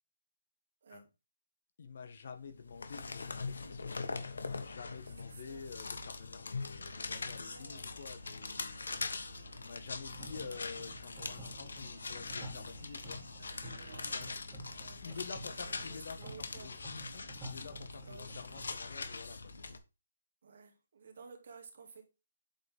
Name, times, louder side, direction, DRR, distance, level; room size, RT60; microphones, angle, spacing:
voice 1, 1.8-4.1 4.3-8.8 9.6-13.2 14.0-14.4 15.0-19.8, left 5 dB, 55° left, 1.4 m, -49 dB
sound 1, 2.5-19.8, left 4 dB, 85° left, 1.2 m, -42 dB
voice 2, 5.0-5.6 7.5-7.9 14.2-15.2 15.5-16.8 18.1-18.7 20.4-22.0, right 5 dB, 55° right, 2.2 m, -55 dB
sound 2, 6.9-14.3, right 4 dB, 80° right, 2.1 m, -58 dB
sound 3, 10.1-18.7, right 1 dB, 10° right, 2.2 m, -51 dB
8.0 x 4.2 x 3.6 m
hypercardioid pair, 160°, 0 cm